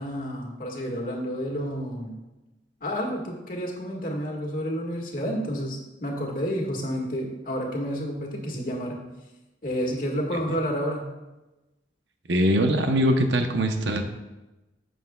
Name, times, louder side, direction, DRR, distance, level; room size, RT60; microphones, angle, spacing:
voice 1, 0.0-2.2 2.8-9.0 9.6-11.1, equal, 45° left, -1 dB, 1.7 m, -30 dB
voice 2, 12.3-14.0, equal, 75° right, 5 dB, 0.8 m, -22 dB
11.0 x 7.8 x 2.3 m, 1.0 s
head